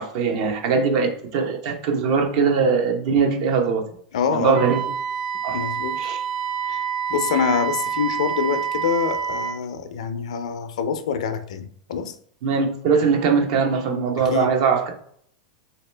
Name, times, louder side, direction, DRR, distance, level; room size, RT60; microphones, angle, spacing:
voice 1, 0.0-3.9 4.3-4.9 5.4-5.6 6.0-6.2 12.4-14.9, right 5 dB, 60° right, 0.9 m, -21 dB
voice 2, 4.1-4.6 5.5-6.0 6.7-6.8 7.1-12.1 14.3-14.5, left 6 dB, 75° left, 0.5 m, -25 dB
Wind instrument woodwind instrument, 4.5-9.6, right 7 dB, 20° right, 0.6 m, -27 dB
3.1 x 2.8 x 3.3 m
hypercardioid pair, 110°, 3 cm